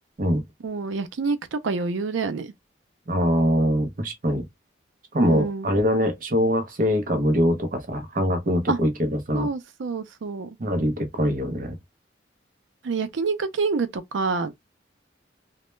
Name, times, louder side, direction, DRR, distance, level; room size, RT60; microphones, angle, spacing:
voice 1, 0.6-2.5 5.3-5.7 8.7-8.8 9.3-10.5 12.8-14.5, right 4 dB, 90° right, 0.5 m, -27 dB
voice 2, 3.1-4.4 5.1-9.5 10.6-11.8, equal, 45° right, 0.6 m, -23 dB
2.2 x 2.0 x 3.1 m
head